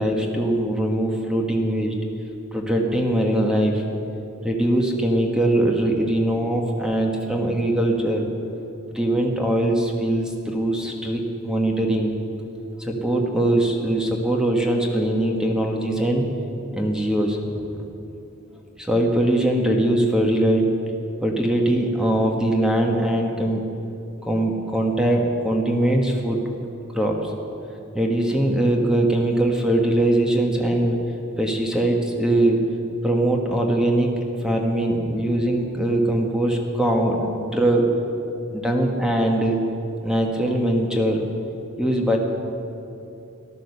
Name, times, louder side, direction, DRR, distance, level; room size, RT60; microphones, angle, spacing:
voice 1, 0.0-1.9 2.5-3.8 4.4-8.3 8.9-12.1 12.8-16.3 16.7-17.8 18.8-20.7 21.2-23.6 24.3-26.4 26.9-27.3 27.9-31.0 31.4-32.6 33.0-34.1 34.4-37.9 38.5-39.6 40.0-41.2 41.8-42.2, right 1 dB, 5° right, 1 dB, 1.3 m, -21 dB
14.0 x 11.5 x 6.7 m, 2.8 s
head